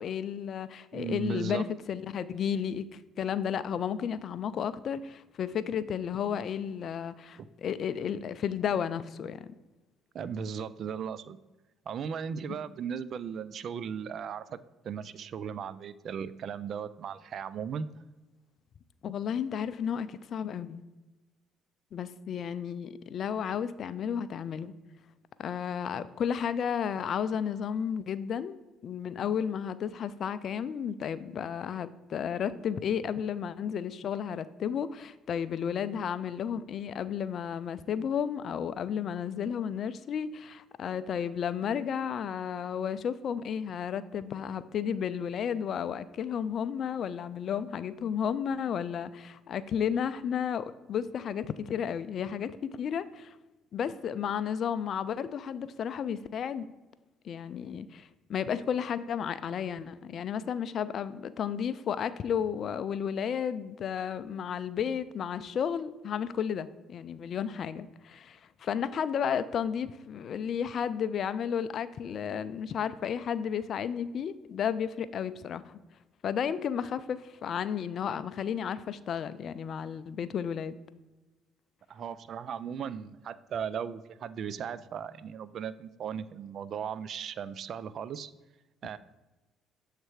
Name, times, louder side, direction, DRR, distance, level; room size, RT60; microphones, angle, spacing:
voice 1, 0.0-9.5 19.0-20.8 21.9-24.7 25.4-28.6 28.8-53.4 53.7-56.7 57.2-75.8 76.2-80.8, left 8 dB, 55° left, 15 dB, 0.3 m, -33 dB
voice 2, 0.9-1.6 10.1-11.4 11.9-14.6 14.8-17.9 81.9-88.3 88.8-89.0, right 7 dB, 60° right, 16 dB, 0.3 m, -37 dB
7.5 x 3.3 x 4.7 m, 1.1 s
hypercardioid pair, 60°, 0 cm